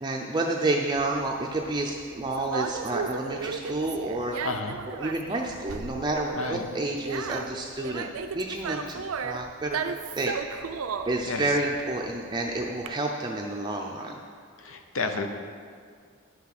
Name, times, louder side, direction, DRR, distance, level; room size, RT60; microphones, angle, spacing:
voice 1, 0.0-4.3 5.0-8.1 8.3-10.3 11.1-14.2, right 2 dB, 20° right, 0 dB, 0.5 m, -29 dB
Conversation, 1.0-12.9, right 5 dB, 80° right, 0.5 m, -35 dB
voice 2, 4.4-4.8 6.3-6.7 11.2-11.4 14.6-15.3, left 4 dB, 70° left, 6 dB, 0.8 m, -31 dB
10.0 x 5.9 x 5.9 m, 2.1 s
head